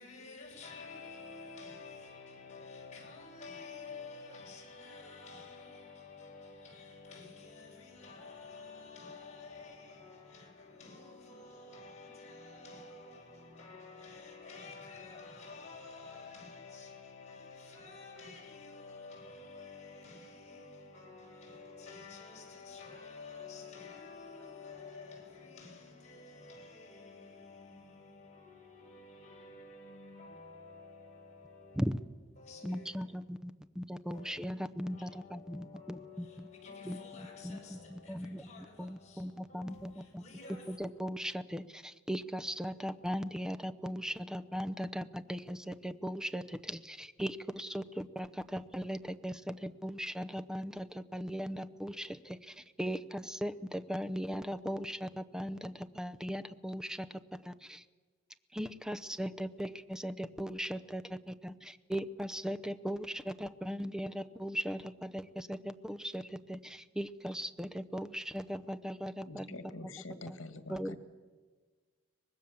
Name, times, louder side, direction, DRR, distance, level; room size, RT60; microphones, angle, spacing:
voice 1, 0.0-31.9 32.4-33.0 34.1-34.4 34.8-40.8, left 4 dB, 35° left, 7.4 m, -50 dB
voice 2, 32.6-33.5 33.8-36.5 36.8-37.0 37.4-40.2 40.7-57.8 58.5-69.6 70.2-70.4 70.7-71.0, equal, 5° right, 0.7 m, -38 dB
voice 3, 69.3-71.0, left 2 dB, 80° left, 1.9 m, -46 dB
24.0 x 20.0 x 7.2 m
head